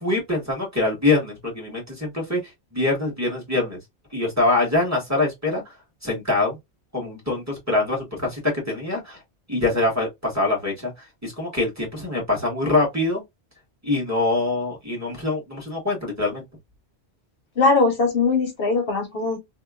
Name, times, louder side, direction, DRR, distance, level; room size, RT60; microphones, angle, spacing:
voice 1, 0.0-2.4 2.7-3.8 4.1-5.6 6.0-6.6 6.9-9.2 9.5-13.2 13.8-16.4, left 2 dB, 15° right, 1.3 m, -24 dB
voice 2, 17.6-19.4, left 3 dB, 65° left, 0.9 m, -20 dB
2.8 x 2.5 x 2.3 m
omnidirectional pair, 1.1 m